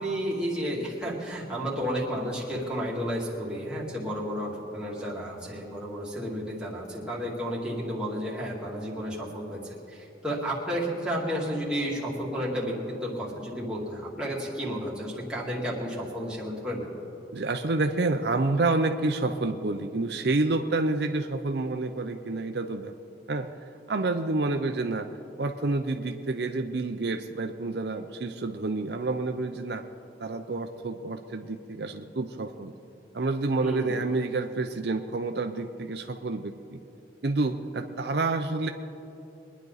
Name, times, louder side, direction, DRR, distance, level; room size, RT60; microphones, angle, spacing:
voice 1, 0.0-16.9 33.6-33.9, equal, 5° right, -6 dB, 2.5 m, -32 dB
voice 2, 17.3-22.9 23.3-23.5 23.9-25.1 25.4-29.8 30.2-32.7 33.1-36.8 37.2-38.7, right 3 dB, 65° right, 6 dB, 0.6 m, -28 dB
23.5 x 10.5 x 4.1 m, 2.9 s
head